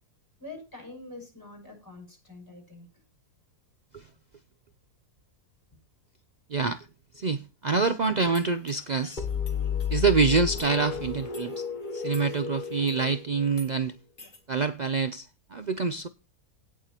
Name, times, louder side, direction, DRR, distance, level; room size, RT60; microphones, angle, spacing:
voice 1, 0.4-2.9, left 2 dB, 15° left, 5.9 m, -45 dB
voice 2, 6.5-6.9 7.1-9.3 9.9-11.7 11.9-13.9 14.5-16.1, right 4 dB, 70° right, 0.4 m, -26 dB
sound 1, 8.0-13.1 13.5-13.7 14.2-14.4, left 2 dB, 60° left, 2.6 m, -52 dB
sound 2, 9.2-13.9, left 7 dB, 35° left, 1.3 m, -32 dB
17.5 x 7.2 x 2.9 m
omnidirectional pair, 1.6 m